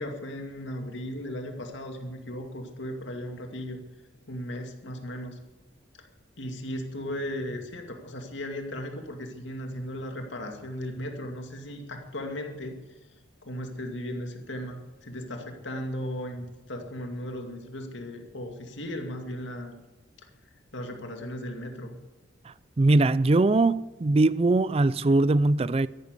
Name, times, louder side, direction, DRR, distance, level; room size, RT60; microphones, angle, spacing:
voice 1, 0.0-3.8 4.3-5.4 6.4-12.8 13.4-19.7 20.7-21.9, equal, 75° left, 2.3 m, -36 dB
voice 2, 22.5-25.9, right 2 dB, 30° right, 0.4 m, -22 dB
13.5 x 11.5 x 8.2 m
head